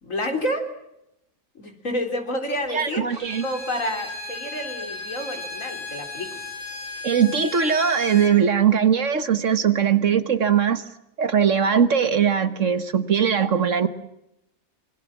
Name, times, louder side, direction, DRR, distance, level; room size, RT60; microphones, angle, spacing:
voice 1, 0.0-0.7 1.5-3.1 3.4-6.3, left 1 dB, 60° left, 4 dB, 4.2 m, -29 dB
voice 2, 2.7-3.4 7.0-10.8 11.2-13.9, right 7 dB, 60° right, 10 dB, 1.6 m, -20 dB
Bowed string instrument, 3.1-8.4, left 3 dB, 80° left, 5.6 m, -36 dB
27.0 x 24.0 x 7.3 m, 0.84 s
omnidirectional pair, 1.5 m